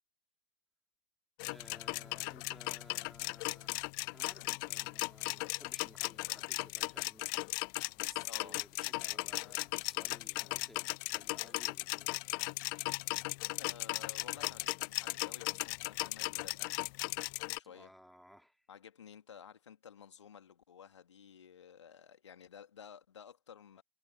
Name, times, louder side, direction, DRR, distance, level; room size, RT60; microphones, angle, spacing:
sound 1, 1.4-17.6, left 31 dB, 45° left, 0.6 m, -37 dB
voice 1, 1.4-7.5 7.9-12.4 17.6-18.7, equal, ahead, 3.4 m, -58 dB
voice 2, 8.2-8.6 9.1-9.2 13.6-16.9 17.5-17.9 18.7-23.8, left 8 dB, 75° left, 2.7 m, -53 dB
figure-of-eight pair, 90°, 15 cm